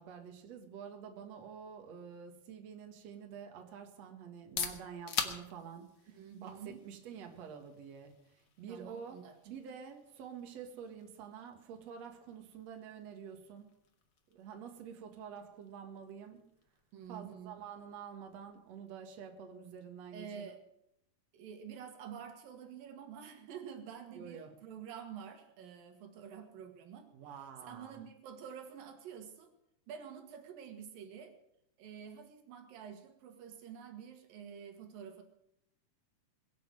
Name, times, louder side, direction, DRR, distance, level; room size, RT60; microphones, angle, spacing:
voice 1, 0.0-13.8 14.3-16.5 17.1-20.6 24.1-24.6 27.1-28.0, right 7 dB, 55° right, 4 dB, 2.7 m, -48 dB
sound 1, 4.3-19.9, left 6 dB, 55° left, 1.3 m, -47 dB
voice 2, 6.1-6.9 8.7-9.3 16.9-17.5 20.1-20.6 21.3-27.1 27.6-29.5 29.9-31.3 31.8-35.2, right 8 dB, 80° right, 6 dB, 3.3 m, -48 dB
22.0 x 7.7 x 7.6 m, 0.78 s
omnidirectional pair, 4.0 m